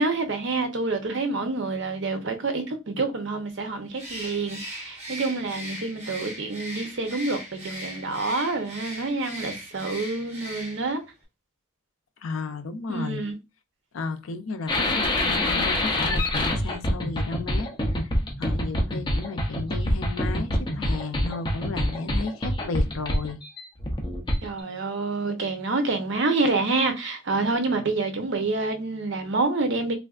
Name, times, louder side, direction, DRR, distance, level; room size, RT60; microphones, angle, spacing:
voice 1, 0.0-11.0 12.9-13.4 24.4-29.9, right 3 dB, 60° right, 0.7 m, -27 dB
Bird, 3.9-11.0, equal, 35° right, 1.0 m, -39 dB
voice 2, 12.2-13.2 13.9-17.7 18.0-18.1 18.4-23.4, left 4 dB, 85° left, 0.5 m, -33 dB
sound 1, 14.7-24.6, left 1 dB, 25° left, 0.6 m, -26 dB
3.4 x 2.5 x 2.4 m
head